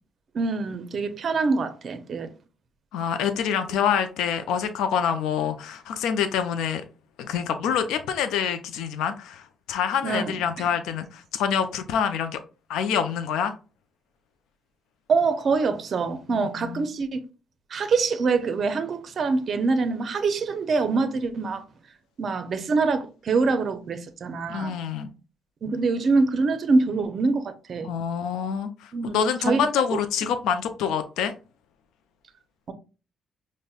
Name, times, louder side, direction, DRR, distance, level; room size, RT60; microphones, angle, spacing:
voice 1, 0.3-2.3 10.0-10.7 15.1-17.2 17.7-21.6 22.2-24.7 25.6-27.9 28.9-30.0, right 4 dB, 50° right, 0.5 m, -25 dB
voice 2, 2.9-6.8 7.2-12.4 12.7-13.5 16.3-16.8 24.5-25.1 27.8-31.3, left 7 dB, 90° left, 0.3 m, -26 dB
5.2 x 2.1 x 2.3 m
cardioid pair, 90°, 0 cm